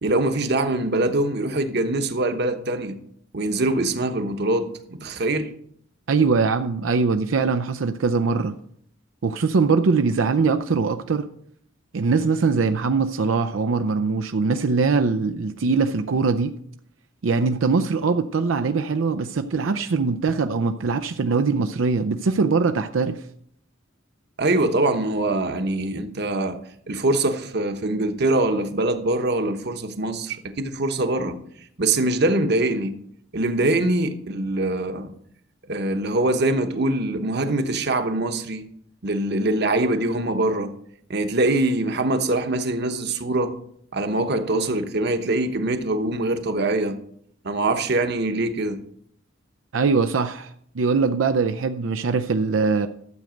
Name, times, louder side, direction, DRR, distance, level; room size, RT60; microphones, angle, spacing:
voice 1, 0.0-3.0 3.3-5.5 24.4-26.6 26.9-31.4 31.8-32.9 33.3-35.1 35.7-38.6 39.0-40.7 41.1-43.5 43.9-47.0 47.4-48.8, right 2 dB, 60° right, 1.1 m, -23 dB
voice 2, 6.1-8.5 9.2-11.3 11.9-16.5 17.2-23.2 49.7-52.9, right 4 dB, 90° right, 0.5 m, -22 dB
12.5 x 7.8 x 5.1 m
head